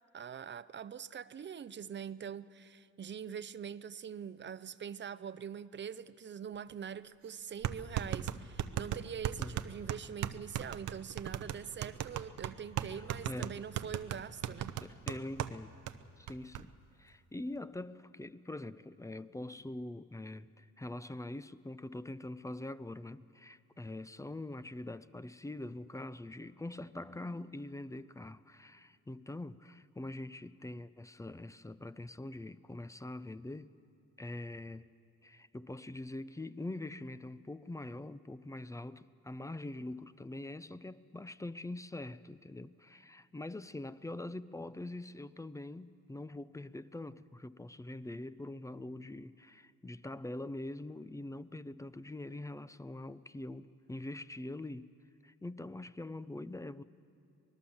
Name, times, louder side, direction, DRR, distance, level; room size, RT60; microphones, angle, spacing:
voice 1, 0.1-14.8, right 8 dB, 40° right, 0.6 m, -44 dB
sound 1, 6.7-6.8 7.6-15.6 15.9-16.0 16.3-16.6, right 11 dB, 80° right, 0.8 m, -37 dB
voice 2, 12.8-13.6 14.8-15.7 16.2-33.7 34.2-34.9 35.2-54.9 55.2-56.8, left 2 dB, 10° left, 0.5 m, -44 dB
25.0 x 19.5 x 7.2 m
cardioid pair, 90°, 30 cm